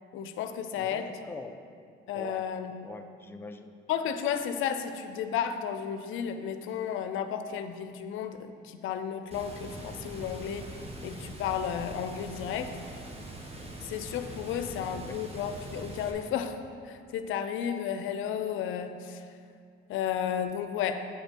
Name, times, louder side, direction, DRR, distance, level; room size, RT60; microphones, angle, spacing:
voice 1, 0.1-1.1 2.1-2.9 3.9-10.7 11.0-12.7 13.8-16.6 16.8-19.2 19.9-21.0, left 8 dB, 85° left, 8 dB, 0.5 m, -33 dB
voice 2, 0.8-1.6 2.1-2.4 2.8-3.7 14.5-15.2, left 3 dB, 10° left, 6 dB, 0.5 m, -43 dB
Water, 9.3-16.1, right 2 dB, 30° right, 1.3 m, -42 dB
8.6 x 5.2 x 5.2 m, 2.3 s
cardioid pair, 90°, 20 cm